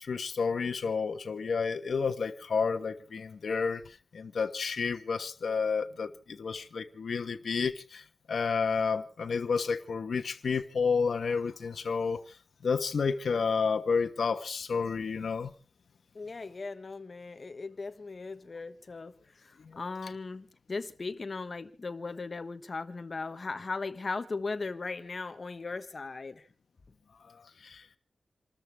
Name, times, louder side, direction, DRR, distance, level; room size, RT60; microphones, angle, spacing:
voice 1, 0.0-12.2 12.6-15.5 19.6-19.8 27.3-27.4 27.6-27.8, left 5 dB, 70° left, 1.3 m, -30 dB
voice 2, 16.1-19.1 19.4-26.4, left 3 dB, 40° left, 1.3 m, -38 dB
28.5 x 13.5 x 3.5 m
wide cardioid pair, 150°, 0 cm